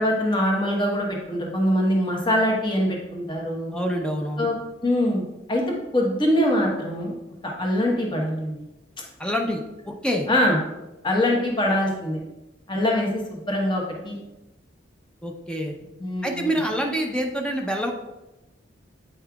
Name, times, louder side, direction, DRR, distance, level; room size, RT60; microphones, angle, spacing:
voice 1, 0.0-3.7 4.4-4.5 4.8-5.2 5.5-5.6 5.9-7.1 7.4-8.6 10.3-10.6 11.0-12.2 12.7-14.2 16.0-16.6, left 1 dB, 25° left, -1 dB, 1.0 m, -23 dB
voice 2, 3.7-4.5 9.2-10.3 15.2-15.8 16.2-17.9, equal, 5° left, 1 dB, 0.6 m, -26 dB
8.5 x 5.4 x 2.3 m, 0.98 s
head